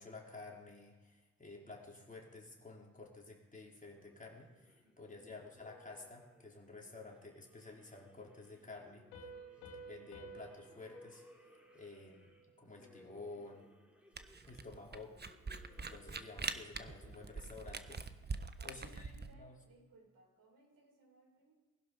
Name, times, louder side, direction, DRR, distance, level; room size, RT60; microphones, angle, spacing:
voice 1, 0.0-9.0 9.7-11.5 11.7-12.3 12.6-13.7 14.5-15.2 15.7-18.1 18.6-19.5, left 3 dB, 20° left, -2 dB, 4.6 m, -52 dB
sound 1, 3.9-18.8, left 1 dB, 5° right, 5.4 m, -64 dB
voice 2, 4.8-5.3 14.9-15.3 18.5-21.5, right 2 dB, 55° right, 0 dB, 6.9 m, -65 dB
Piano, 9.1-12.5, right 2 dB, 80° left, 2.9 m, -54 dB
Camera, 14.2-19.3, right 4 dB, 25° right, 1.3 m, -43 dB
20.5 x 11.5 x 5.3 m, 1.3 s
hypercardioid pair, 45°, 40 cm